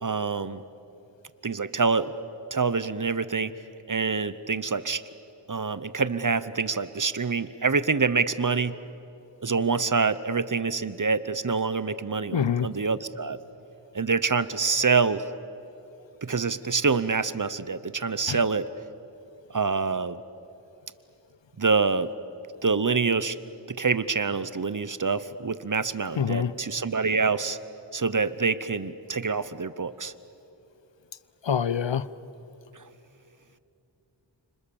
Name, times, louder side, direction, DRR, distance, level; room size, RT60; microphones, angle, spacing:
voice 1, 0.0-0.6 1.4-2.1 2.5-3.5 3.9-5.0 5.5-8.7 9.4-13.4 13.9-15.2 16.2-18.7 19.5-20.2 21.6-22.1 22.6-23.4 23.8-27.6 27.9-30.1, right 4 dB, 45° right, 15 dB, 0.9 m, -26 dB
voice 2, 12.3-12.7 18.3-18.4 26.1-26.5 31.4-32.1, left 8 dB, 70° left, 17 dB, 0.8 m, -25 dB
30.0 x 27.0 x 7.1 m, 2.9 s
wide cardioid pair, 60°, 46 cm